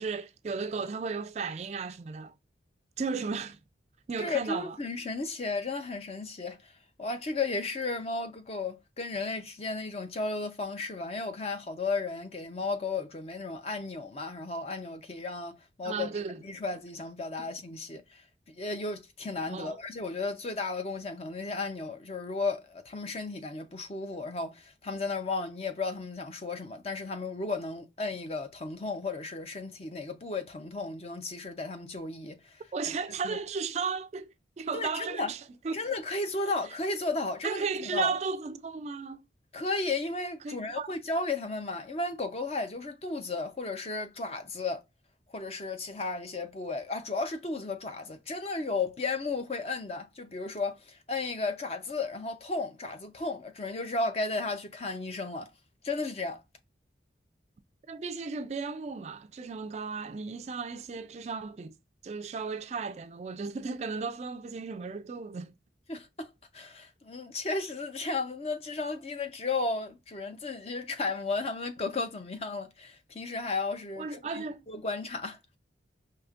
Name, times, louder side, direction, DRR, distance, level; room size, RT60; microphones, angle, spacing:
voice 1, 0.0-2.3 3.0-3.6 4.1-4.8 15.8-16.4 17.4-17.5 19.5-19.8 32.7-35.8 37.4-39.2 40.4-40.9 57.9-61.8 62.0-65.5 74.0-74.6, right 5 dB, 40° right, 0.3 m, -35 dB
voice 2, 4.2-6.7 7.0-16.1 16.4-32.6 33.2-33.4 34.7-35.3 35.7-38.1 39.5-44.8 45.3-55.5 55.8-56.4 65.9-75.4, left 3 dB, 35° left, 0.6 m, -34 dB
4.8 x 2.8 x 2.4 m
head